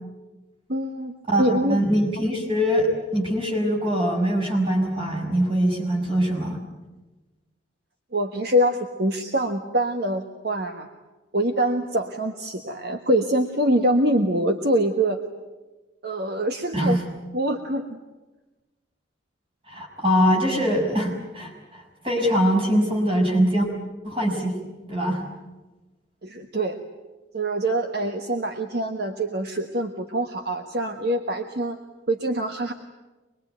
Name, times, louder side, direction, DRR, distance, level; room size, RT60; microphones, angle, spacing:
voice 1, 0.7-1.1 1.4-1.9 8.1-10.9 11.3-15.2 16.0-17.0 17.3-18.0 26.2-26.8 27.3-31.8 32.1-32.7, right 1 dB, 55° right, 5 dB, 1.4 m, -24 dB
voice 2, 1.3-6.6 16.7-17.0 19.7-23.7 24.0-24.6 24.9-25.2, equal, 25° right, 0 dB, 6.3 m, -23 dB
25.0 x 22.0 x 9.2 m, 1.1 s
head